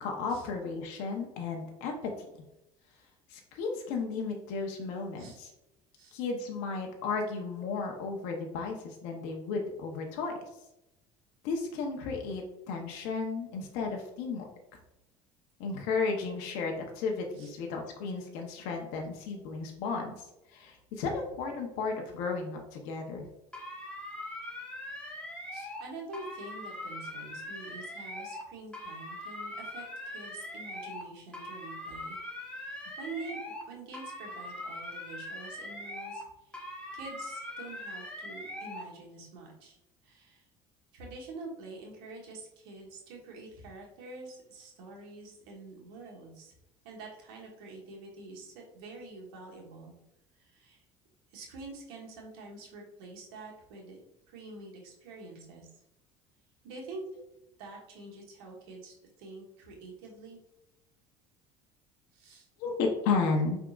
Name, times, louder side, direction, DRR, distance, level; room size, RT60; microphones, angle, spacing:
voice 1, 0.0-2.3 3.3-5.5 6.1-10.3 11.4-14.5 15.6-23.3 25.5-25.7 62.6-63.6, left 4 dB, 80° left, 2 dB, 0.8 m, -34 dB
sound 1, 23.5-25.8 26.1-28.4 28.7-31.0 31.3-33.7 33.9-36.3 36.5-38.9, left 1 dB, 10° left, 1.4 m, -41 dB
voice 2, 25.4-32.2 32.4-33.4 33.7-36.6 36.9-39.8 40.0-40.4 40.9-46.5 46.8-49.9 50.4-50.8 51.3-54.0 54.3-55.7 56.6-57.0 57.6-60.4 62.1-62.5, right 3 dB, 90° right, -1 dB, 1.3 m, -46 dB
5.0 x 3.6 x 2.4 m, 0.88 s
supercardioid pair, 100°, 12 cm